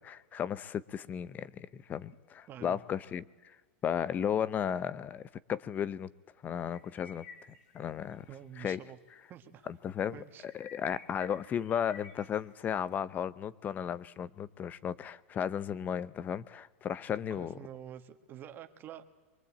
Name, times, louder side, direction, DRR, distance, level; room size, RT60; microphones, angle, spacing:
voice 1, 0.0-3.3 3.8-6.1 6.4-7.2 7.7-8.2 8.6-8.8 9.7-10.2 10.4-17.5, left 8 dB, 25° left, 0.7 m, -34 dB
voice 2, 2.5-2.8 8.3-9.0 9.3-9.7 10.1-10.5 17.4-19.0, right 10 dB, 30° right, 1.8 m, -47 dB
sound 1, 6.7-7.8 8.1-8.4 8.7-8.8 10.4-12.6, left 5 dB, 65° left, 5.2 m, -52 dB
23.5 x 23.0 x 8.7 m
supercardioid pair, 135°, 7 cm